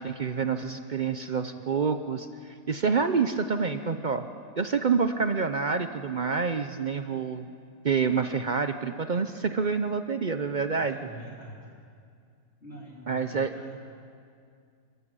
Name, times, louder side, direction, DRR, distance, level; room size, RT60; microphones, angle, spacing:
voice 1, 0.0-4.2 4.6-7.5 7.8-11.0 13.1-13.5, right 5 dB, 55° right, 9 dB, 0.5 m, -27 dB
voice 2, 10.7-11.7 12.6-13.7, right 1 dB, 40° left, -5 dB, 3.3 m, -45 dB
28.5 x 13.5 x 8.1 m, 2.3 s
omnidirectional pair, 1.7 m